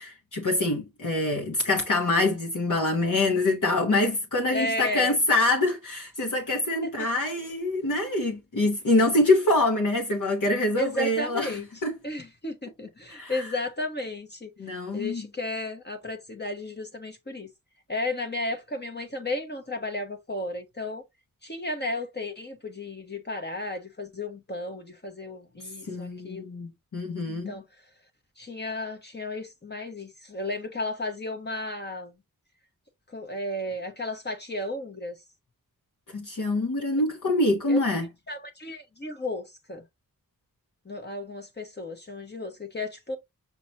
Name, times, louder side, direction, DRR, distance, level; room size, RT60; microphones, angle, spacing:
voice 1, 0.0-11.9 13.1-13.5 14.6-15.2 25.9-27.5 36.1-38.1, left 2 dB, 60° left, 1.3 m, -25 dB
voice 2, 4.5-5.1 6.8-6.9 10.7-11.6 12.0-14.5 14.9-17.5 17.9-21.0 21.4-26.5 27.3-27.6 28.4-32.1 33.1-35.1 37.7-37.8 38.3-39.8 40.8-43.2, left 2 dB, 30° left, 1.1 m, -33 dB
5.7 x 2.9 x 2.9 m
wide cardioid pair, 70°, 36 cm